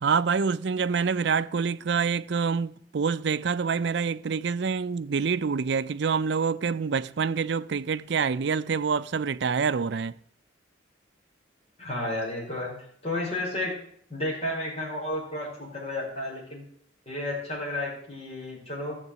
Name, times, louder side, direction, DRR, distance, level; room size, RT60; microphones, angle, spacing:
voice 1, 0.0-10.2, right 5 dB, 60° right, 0.4 m, -26 dB
voice 2, 11.8-12.7 13.0-13.7 14.1-16.6 17.1-19.0, left 1 dB, 35° left, 5.3 m, -32 dB
13.5 x 7.2 x 8.1 m
head